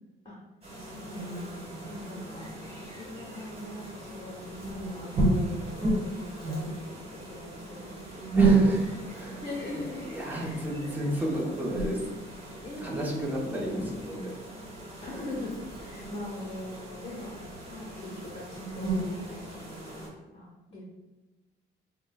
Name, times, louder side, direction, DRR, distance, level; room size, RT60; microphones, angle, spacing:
sound 1, 0.6-20.1, right 3 dB, 30° right, 1.4 m, -32 dB
voice 1, 0.8-2.4 2.9-8.5 9.4-11.1 12.6-13.9 15.0-17.4 17.7-20.8, left 1 dB, 30° left, -6 dB, 1.1 m, -42 dB
voice 2, 8.4-9.4 10.0-12.1 12.8-14.3, equal, 10° right, -3 dB, 0.9 m, -33 dB
5.7 x 2.2 x 2.3 m, 1.2 s
cardioid pair, 90°, 20 cm